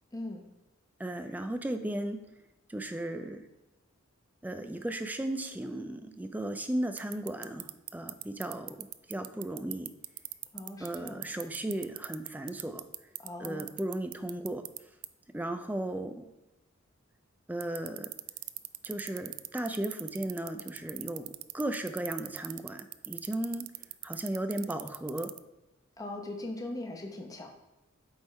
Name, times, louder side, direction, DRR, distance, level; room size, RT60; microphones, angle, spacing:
voice 1, 0.1-0.4 10.5-11.2 13.2-13.7 26.0-27.5, left 2 dB, 15° left, 2 dB, 0.8 m, -40 dB
voice 2, 1.0-2.3 2.7-3.4 4.4-9.9 10.8-12.8 13.4-14.7 15.3-16.3 17.5-18.1 18.8-23.7 24.0-25.3, right 1 dB, 10° right, 8 dB, 0.4 m, -35 dB
sound 1, 7.0-14.8 15.0-15.1 17.6-25.4, right 21 dB, 90° right, 0.3 m, -38 dB
8.0 x 3.5 x 4.2 m, 0.99 s
head